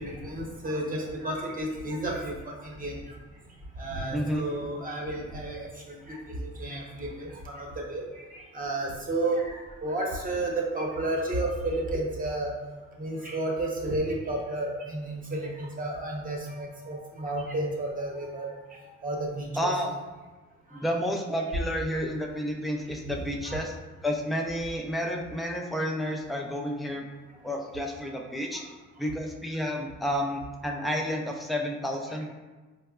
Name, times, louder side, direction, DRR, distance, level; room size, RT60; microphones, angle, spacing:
voice 1, 0.0-2.5 2.8-2.9 3.8-5.7 6.1-6.2 6.6-8.0 8.5-9.4 9.8-12.5 13.0-18.5 19.0-19.7 23.5-23.6, right 2 dB, 30° right, -2 dB, 0.9 m, -31 dB
voice 2, 4.1-4.4 19.6-19.9 20.7-23.8 24.0-27.1 27.4-28.7 29.0-32.3, equal, ahead, 0 dB, 0.4 m, -30 dB
4.6 x 2.1 x 2.3 m, 1.3 s
cardioid pair, 90°, 30 cm